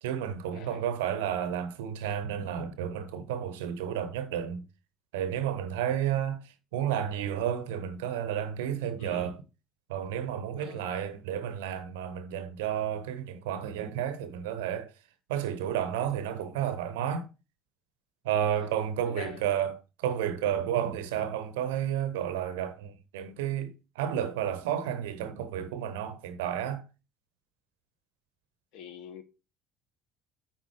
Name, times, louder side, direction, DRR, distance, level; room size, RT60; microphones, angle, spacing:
voice 1, 0.0-4.6 5.1-6.4 6.7-9.4 9.9-14.9 15.3-17.3 18.2-26.8, right 9 dB, 70° right, 0.9 m, -31 dB
voice 2, 0.5-0.8 9.0-9.4 10.6-10.9 18.5-18.7 19.0-19.4 28.7-29.2, left 8 dB, 60° left, 1.1 m, -45 dB
9.1 x 4.0 x 4.8 m
figure-of-eight pair, 55°, 0 cm